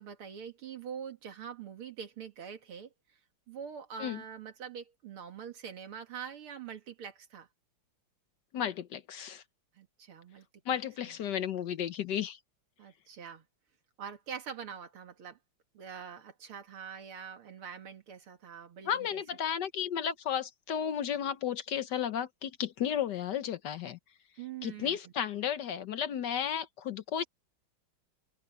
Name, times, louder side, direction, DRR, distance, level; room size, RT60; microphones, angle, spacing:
voice 1, 0.0-2.9 3.5-7.5 9.7-10.5 11.1-11.2 12.8-13.5 14.0-15.4 15.7-19.2 24.4-25.1, right 7 dB, 90° right, 2.8 m, -44 dB
voice 2, 8.5-9.4 10.7-12.4 18.9-24.0 24.6-27.2, left 9 dB, 65° left, 1.3 m, -33 dB
open air
omnidirectional pair, 2.3 m